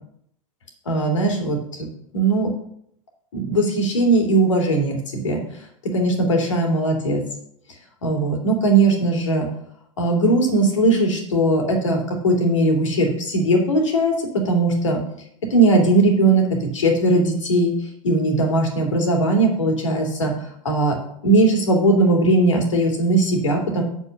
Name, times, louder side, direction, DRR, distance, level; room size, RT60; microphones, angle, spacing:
voice 1, 0.9-1.9 2.1-2.5 3.3-5.4 5.9-7.2 8.0-9.5 10.0-15.0 15.5-17.7 18.0-20.3 20.6-20.9 21.2-23.8, right 2 dB, 65° left, 2 dB, 2.6 m, -19 dB
7.2 x 5.5 x 6.4 m, 0.68 s
figure-of-eight pair, 90°, 17 cm